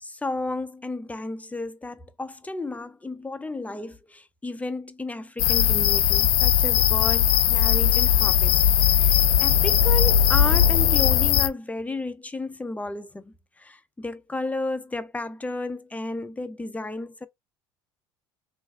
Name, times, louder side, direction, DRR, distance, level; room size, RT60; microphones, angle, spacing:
voice 1, 0.0-8.6 9.0-17.3, left 2 dB, 10° left, 0.5 m, -33 dB
sound 1, 5.4-11.5, left 9 dB, 80° left, 0.4 m, -19 dB
3.0 x 2.5 x 3.6 m
hypercardioid pair, 75°, 13 cm